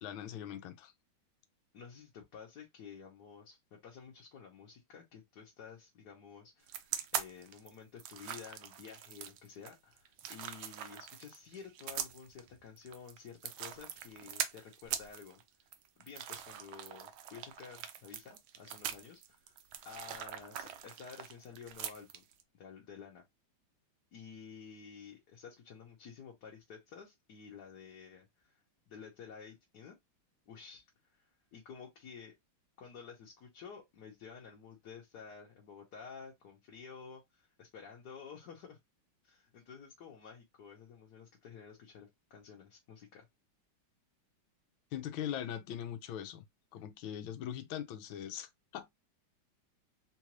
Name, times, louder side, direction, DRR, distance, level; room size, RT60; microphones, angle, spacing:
voice 1, 0.0-0.9 44.9-46.4 46.7-48.9, left 10 dB, 75° left, 1.4 m, -41 dB
voice 2, 1.7-15.4 16.0-19.6 19.8-22.2 22.5-23.2 24.1-29.9 30.5-30.8 31.1-32.3 32.8-38.8 39.2-43.3, left 6 dB, 60° left, 1.4 m, -52 dB
sound 1, 6.7-22.4, right 10 dB, 85° right, 1.5 m, -42 dB
3.9 x 2.5 x 2.9 m
omnidirectional pair, 2.2 m